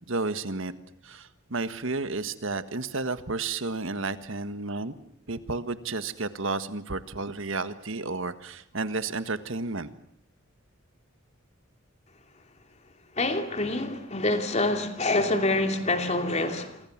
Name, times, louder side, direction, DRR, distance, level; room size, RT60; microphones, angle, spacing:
voice 1, 0.1-0.7 1.0-4.9 5.3-9.9, right 3 dB, 65° right, 1.6 m, -32 dB
voice 2, 13.2-16.8, left 2 dB, 35° left, 2.8 m, -26 dB
28.5 x 24.5 x 7.4 m
head